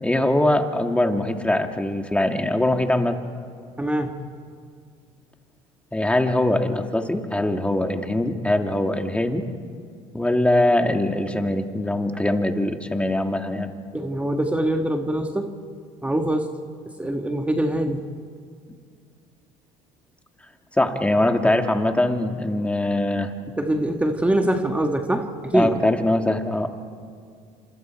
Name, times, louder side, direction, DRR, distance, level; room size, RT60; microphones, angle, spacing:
voice 1, 0.0-3.2 5.9-9.5 10.1-13.7 20.8-23.3 25.5-26.8, left 1 dB, 10° left, 5 dB, 2.2 m, -22 dB
voice 2, 3.8-4.2 13.9-15.6 16.0-16.5 16.9-18.0 23.6-25.7, right 1 dB, 10° right, 4 dB, 1.6 m, -23 dB
29.5 x 27.0 x 4.6 m, 2.2 s
supercardioid pair, 90°, 15 cm